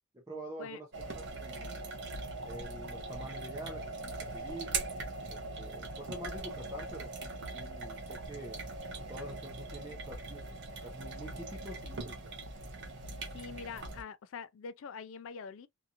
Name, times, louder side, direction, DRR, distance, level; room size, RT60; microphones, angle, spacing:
voice 1, 0.1-1.8 2.4-4.8 5.3-8.6 9.1-12.2, right 1 dB, 15° right, 0.6 m, -47 dB
sound 1, 0.9-14.0, right 3 dB, 50° right, 0.6 m, -41 dB
voice 2, 13.3-15.7, left 5 dB, 60° left, 0.3 m, -44 dB
2.8 x 2.5 x 2.4 m
head